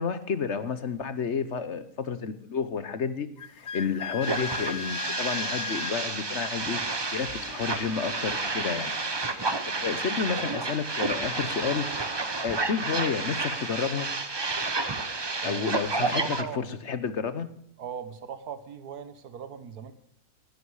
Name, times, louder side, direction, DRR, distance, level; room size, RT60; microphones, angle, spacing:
voice 1, 0.0-6.8 7.1-8.9 9.7-14.1 15.4-17.5, left 6 dB, 55° left, 13 dB, 1.2 m, -31 dB
Wind instrument woodwind instrument, 3.4-6.0, left 8 dB, 70° left, 0.4 m, -36 dB
sound 1, 4.2-16.4, right 3 dB, 25° right, 0.7 m, -31 dB
sound 2, 7.2-10.1 10.6-10.7, right 1 dB, 55° right, 4.1 m, -52 dB
voice 2, 15.4-15.9 16.2-16.6 17.8-19.9, right 7 dB, 90° right, 12 dB, 1.7 m, -39 dB
15.5 x 11.5 x 4.9 m, 0.69 s
omnidirectional pair, 1.6 m